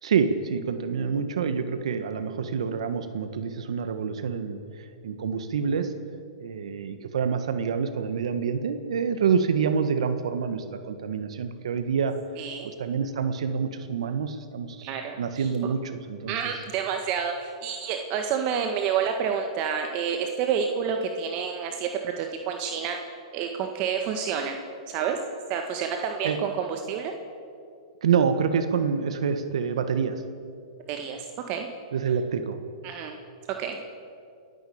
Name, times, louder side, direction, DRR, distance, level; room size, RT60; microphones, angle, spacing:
voice 1, 0.0-5.9 6.4-12.1 12.6-14.9 15.2-16.3 26.2-26.4 28.0-30.2 31.9-32.6, right 6 dB, 80° right, 9 dB, 1.5 m, -27 dB
voice 2, 12.4-12.7 14.8-15.5 16.3-23.0 23.3-24.6 24.9-25.2 25.5-27.1 30.9-31.7 32.8-33.1 33.6-33.8, right 7 dB, 40° right, 4 dB, 1.7 m, -29 dB
28.0 x 11.0 x 8.7 m, 2.5 s
hypercardioid pair, 140°, 3 cm